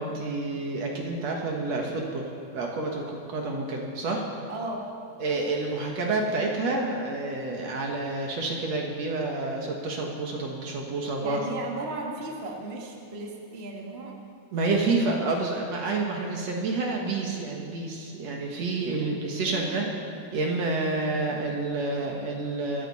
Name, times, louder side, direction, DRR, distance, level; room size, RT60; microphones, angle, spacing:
voice 1, 0.0-2.3 2.5-4.3 5.2-11.4 14.5-19.9 20.3-22.9, right 3 dB, 55° right, 0 dB, 2.3 m, -29 dB
voice 2, 4.5-5.0 11.2-14.2 19.0-19.1 19.4-19.9, right 2 dB, 30° right, 0 dB, 1.2 m, -36 dB
22.5 x 14.0 x 4.2 m, 2.4 s
omnidirectional pair, 4.0 m